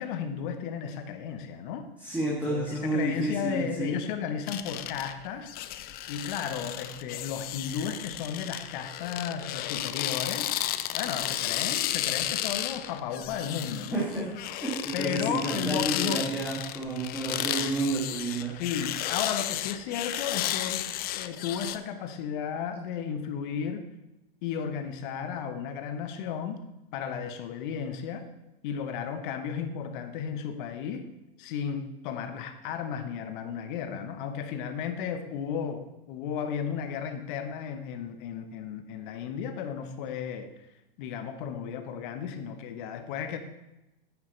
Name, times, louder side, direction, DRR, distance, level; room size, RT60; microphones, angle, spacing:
voice 1, 0.0-1.9 2.5-5.5 6.1-14.1 14.9-16.3 18.6-23.8 24.4-26.6 26.9-28.2 28.6-31.0 31.4-40.5 41.0-43.4, left 7 dB, 55° left, 8 dB, 1.3 m, -34 dB
voice 2, 2.0-3.9 13.9-14.3 14.6-18.5, right 2 dB, 5° right, -6 dB, 2.5 m, -30 dB
sound 1, 4.5-21.8, left 13 dB, 30° left, 0.5 m, -33 dB
9.6 x 8.8 x 3.3 m, 0.94 s
hypercardioid pair, 100°, 29 cm